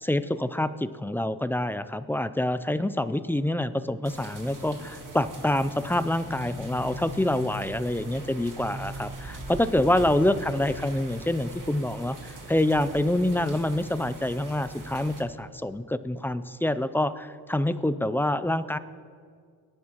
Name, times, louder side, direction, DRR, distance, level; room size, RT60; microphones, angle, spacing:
voice 1, 0.0-18.8, left 1 dB, 5° left, 13 dB, 0.4 m, -26 dB
sound 1, 4.0-15.2, equal, 50° right, 2.0 m, -41 dB
19.5 x 11.0 x 3.0 m, 2.1 s
cardioid pair, 75°, 39 cm